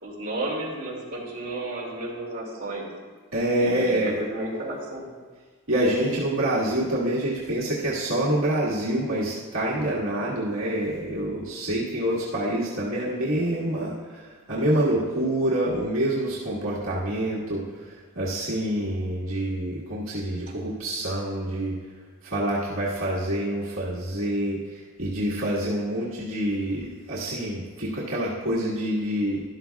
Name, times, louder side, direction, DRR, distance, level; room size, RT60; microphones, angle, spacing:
voice 1, 0.0-2.9 3.6-5.1, right 1 dB, 40° right, -5 dB, 2.4 m, -32 dB
voice 2, 3.3-4.2 5.7-21.8 22.2-29.4, right 1 dB, 70° right, -7 dB, 1.7 m, -26 dB
13.0 x 12.0 x 2.3 m, 1.5 s
head